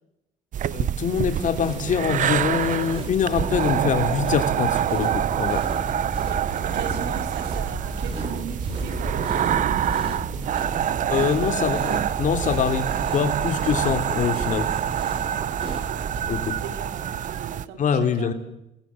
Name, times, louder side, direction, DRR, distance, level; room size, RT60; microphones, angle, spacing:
sound 1, 0.5-17.7, right 10 dB, 50° right, 0.8 m, -26 dB
voice 1, 0.7-5.6 11.1-12.9 13.1-14.7 16.3-16.6 17.8-18.3, left 7 dB, 50° left, 8 dB, 3.1 m, -24 dB
sound 2, 1.3-16.7, right 2 dB, 30° right, 7.6 m, -34 dB
voice 2, 6.2-9.8 15.2-18.3, right 7 dB, 85° right, 7 dB, 3.9 m, -39 dB
28.0 x 20.5 x 7.7 m, 0.88 s
cardioid pair, 110°, 17 cm